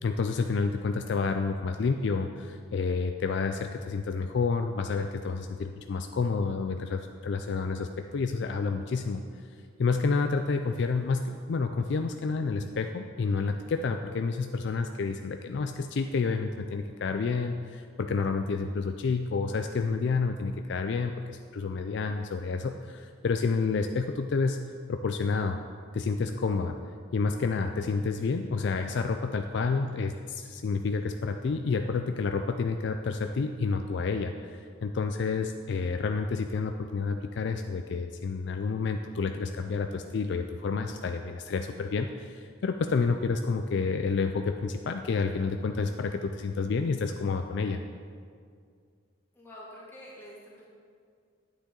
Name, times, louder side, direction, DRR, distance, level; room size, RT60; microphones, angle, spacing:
voice 1, 0.0-9.2 9.8-24.6 24.9-25.6 25.9-26.8 27.1-47.8, left 4 dB, 55° left, 6 dB, 0.4 m, -29 dB
voice 2, 49.3-50.6, equal, 10° left, -7 dB, 2.2 m, -47 dB
10.0 x 8.8 x 3.8 m, 2.2 s
head